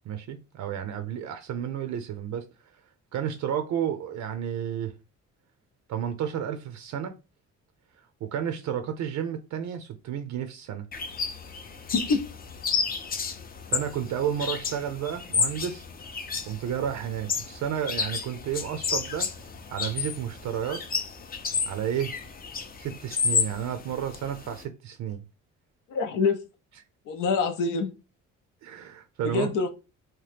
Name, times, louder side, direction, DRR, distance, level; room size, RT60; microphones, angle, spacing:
voice 1, 0.1-2.4 3.1-4.9 5.9-7.1 8.2-10.9 13.7-15.8 16.5-19.3 19.7-20.8 21.7-22.1 22.8-25.2 28.6-29.5, right 9 dB, 70° right, 0.5 m, -31 dB
sound 1, 10.9-24.6, left 5 dB, 30° left, 0.5 m, -32 dB
voice 2, 25.9-26.4 27.1-27.9 29.2-29.7, left 4 dB, 85° left, 0.6 m, -25 dB
2.8 x 2.1 x 3.2 m
cardioid pair, 90°, 30 cm